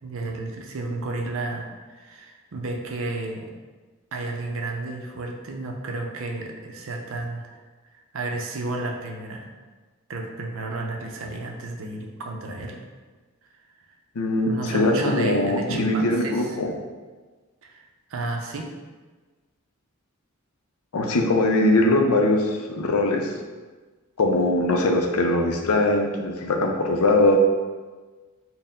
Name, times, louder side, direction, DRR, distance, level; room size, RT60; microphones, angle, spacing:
voice 1, 0.0-3.5 4.1-7.6 7.9-9.5 10.1-12.8 14.4-16.6 17.6-18.7, right 2 dB, 60° right, 2 dB, 0.5 m, -32 dB
voice 2, 14.2-16.7 20.9-23.3 24.2-27.4, left 2 dB, 75° left, 2 dB, 0.5 m, -21 dB
4.4 x 2.0 x 3.5 m, 1.3 s
head